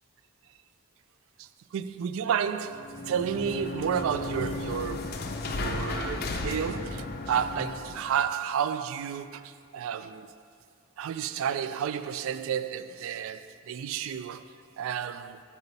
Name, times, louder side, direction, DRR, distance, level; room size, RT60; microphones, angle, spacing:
voice 1, 1.4-10.3 11.0-15.4, right 8 dB, 80° right, 0.3 m, -31 dB
sound 1, 2.7-8.2, left 2 dB, 45° left, 0.5 m, -34 dB
5.9 x 5.5 x 5.3 m
head